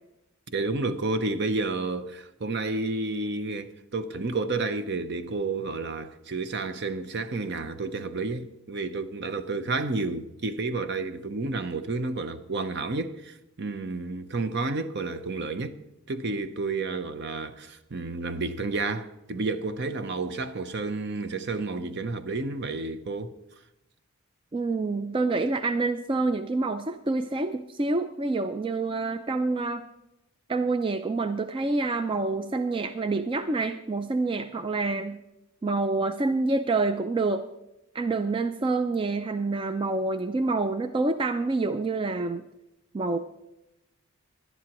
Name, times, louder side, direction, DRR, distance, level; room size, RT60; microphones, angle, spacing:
voice 1, 0.5-15.8 16.1-23.3, right 3 dB, 50° right, 0.7 m, -31 dB
voice 2, 24.5-29.8 30.5-35.2 35.6-37.4 37.9-42.4 42.9-43.2, right 3 dB, 25° right, 0.3 m, -27 dB
19.0 x 11.5 x 3.0 m
head